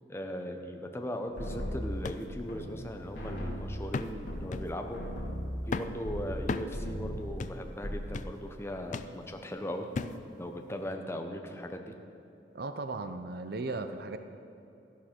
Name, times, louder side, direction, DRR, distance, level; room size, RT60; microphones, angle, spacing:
voice 1, 0.1-5.0 5.6-9.9 10.4-11.9, equal, 15° left, 4 dB, 0.7 m, -38 dB
sound 1, 1.4-2.9 3.1-6.4 6.7-7.3 7.6-8.2, equal, 80° left, 2.4 m, -37 dB
sound 2, 2.0-2.3 2.7-2.8 3.9-4.2 4.5-4.8 5.7-6.0 6.5-6.8 7.4-7.6 8.1-8.4 8.9-9.2 9.9-10.2 10.9-11.0, left 4 dB, 45° left, 0.4 m, -35 dB
voice 2, 12.5-14.2, right 3 dB, 60° right, 8 dB, 0.7 m, -36 dB
13.0 x 11.5 x 4.5 m, 2.8 s
head